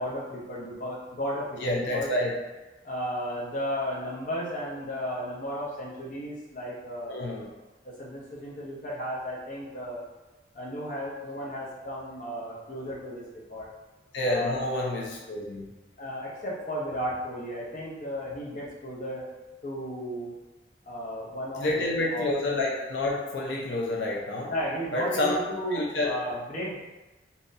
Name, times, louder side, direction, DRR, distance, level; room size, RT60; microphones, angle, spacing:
voice 1, 0.0-2.1 2.8-7.4 8.0-10.0 10.5-13.2 13.5-13.7 14.2-14.6 16.0-19.3 19.6-20.4 20.8-22.3 24.5-26.8, equal, 45° left, -5 dB, 0.9 m, -34 dB
voice 2, 1.6-2.3 7.1-7.5 14.1-15.7 21.6-24.5 24.9-25.4 25.7-26.1, left 2 dB, 90° left, -3 dB, 0.7 m, -28 dB
3.9 x 2.9 x 2.6 m, 1.1 s
head